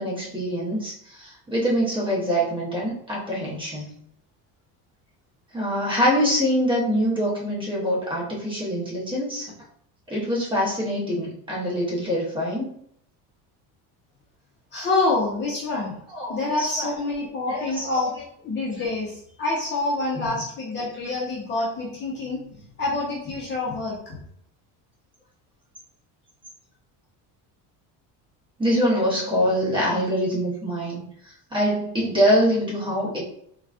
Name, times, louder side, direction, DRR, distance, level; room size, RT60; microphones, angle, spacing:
voice 1, 0.0-3.9 5.5-9.5 10.1-12.7 16.1-16.9 17.5-17.9 18.7-18.8 20.2-20.3 28.6-31.0 31.5-33.2, equal, 15° right, -6 dB, 0.8 m, -24 dB
voice 2, 14.7-15.9 16.3-18.1 18.4-22.4 22.8-24.2, left 2 dB, 30° left, -4 dB, 0.7 m, -27 dB
3.9 x 2.3 x 2.3 m, 0.68 s
cardioid pair, 165°, 37 cm